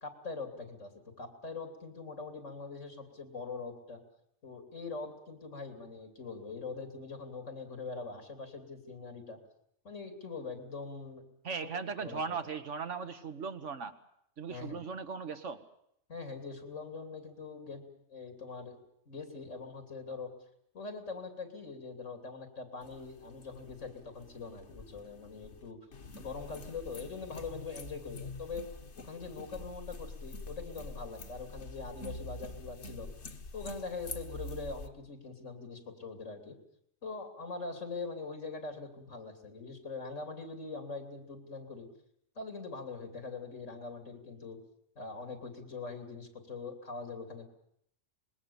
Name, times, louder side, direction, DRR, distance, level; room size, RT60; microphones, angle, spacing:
voice 1, 0.0-4.0 4.4-9.4 9.9-11.2 11.6-11.7 12.0-12.4 14.5-14.8 16.1-17.8 18.1-18.8 19.1-20.3 20.7-25.8 26.2-28.7 29.0-33.1 33.5-36.6 37.0-41.9 42.4-44.6 45.0-47.4, left 4 dB, 90° left, 5 dB, 3.4 m, -43 dB
voice 2, 11.4-13.9 14.4-15.6, right 5 dB, 75° right, 8 dB, 1.7 m, -38 dB
sound 1, 22.8-34.9, left 2 dB, 65° left, 1.6 m, -46 dB
25.0 x 21.0 x 7.1 m, 0.72 s
omnidirectional pair, 1.2 m